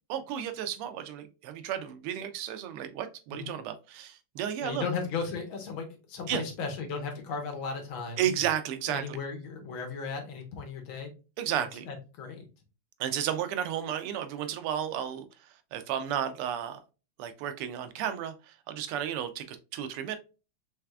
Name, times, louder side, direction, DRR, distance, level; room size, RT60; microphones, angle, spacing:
voice 1, 0.1-4.8 6.3-6.4 8.2-9.2 11.4-11.8 13.0-15.2 15.7-16.8 17.2-20.2, right 10 dB, 90° right, 1.5 m, -33 dB
voice 2, 4.6-8.3 8.9-11.1 11.6-12.5, left 5 dB, 70° left, 1.6 m, -36 dB
4.6 x 3.3 x 2.3 m
omnidirectional pair, 2.4 m